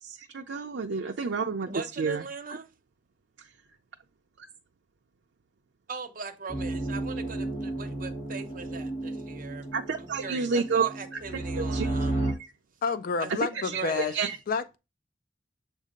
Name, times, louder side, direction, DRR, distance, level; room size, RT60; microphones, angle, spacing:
voice 1, 0.0-1.7 2.0-2.2 4.4-4.5 9.7-10.9 11.6-11.9 12.4-12.5 13.5-14.4, right 5 dB, 90° right, 0.5 m, -30 dB
voice 2, 1.7-2.7 5.9-9.7 10.0-12.2 13.2-13.3 13.7-14.2, right 4 dB, 50° right, 0.9 m, -39 dB
sound 1, 6.5-12.3, right 2 dB, 35° left, 2.1 m, -33 dB
voice 3, 12.8-14.1 14.5-14.8, left 5 dB, 50° left, 0.4 m, -29 dB
7.3 x 2.7 x 5.1 m
head